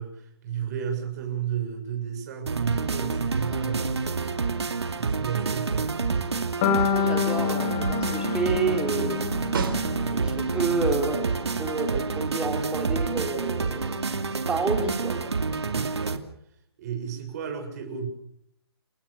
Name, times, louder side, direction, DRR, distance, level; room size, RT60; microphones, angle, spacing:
voice 1, 0.0-4.4 5.0-5.9 6.1-6.5 15.6-16.2 16.8-18.1, right 8 dB, 40° right, 4 dB, 6.9 m, -33 dB
sound 1, 2.5-16.2, right 4 dB, 90° right, 2.6 m, -28 dB
sound 2, 6.6-10.7, left 8 dB, 30° left, 4.1 m, -28 dB
voice 2, 6.8-9.2 10.1-14.0 14.5-15.2, right 4 dB, 5° right, 2 dB, 4.4 m, -29 dB
Snare drum, 9.5-10.5 14.9-15.0, right 5 dB, 55° right, 4.8 m, -32 dB
29.5 x 17.5 x 6.7 m, 0.73 s
hypercardioid pair, 155°, 14 cm